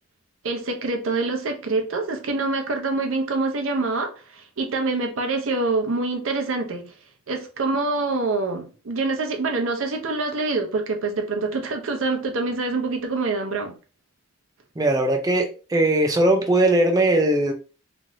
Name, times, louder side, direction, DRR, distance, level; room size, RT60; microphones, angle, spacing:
voice 1, 0.4-6.9 7.3-13.7, right 3 dB, 65° right, 0.6 m, -25 dB
voice 2, 14.8-17.5, right 1 dB, 15° right, 0.4 m, -19 dB
3.0 x 2.5 x 2.6 m
head